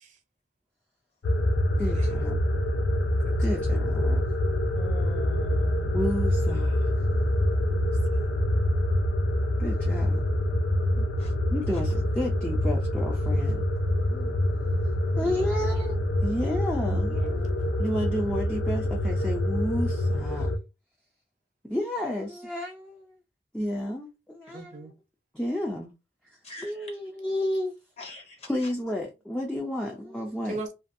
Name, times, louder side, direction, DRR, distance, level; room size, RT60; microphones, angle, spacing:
sound 1, 1.2-20.6, left 1 dB, 85° left, 0.5 m, -26 dB
voice 1, 1.8-2.4 3.4-4.2 5.9-6.9 9.6-10.2 11.5-13.6 14.1-14.4 15.2-20.5 21.6-23.2 23.5-24.9 25.3-25.9 26.6-27.8 28.5-30.6, left 1 dB, 5° left, 0.3 m, -31 dB
voice 2, 3.2-3.7 7.5-8.4 11.0-11.1 15.4-15.5 16.9-17.5 24.5-24.9 30.5-30.7, right 3 dB, 45° right, 0.5 m, -41 dB
voice 3, 4.7-6.0 11.2-11.3 26.4-26.7 28.0-28.4, left 2 dB, 35° left, 0.7 m, -42 dB
2.5 x 2.2 x 2.5 m
head